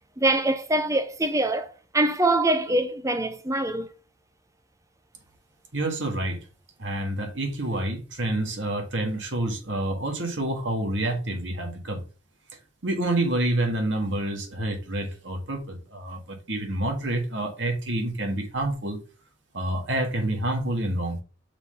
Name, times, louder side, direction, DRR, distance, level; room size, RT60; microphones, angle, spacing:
voice 1, 0.2-3.9, right 1 dB, 15° right, 0.8 m, -24 dB
voice 2, 5.7-6.4 6.8-12.0 12.8-19.0 19.5-21.2, right 1 dB, 65° right, 1.8 m, -28 dB
6.1 x 3.9 x 5.6 m
head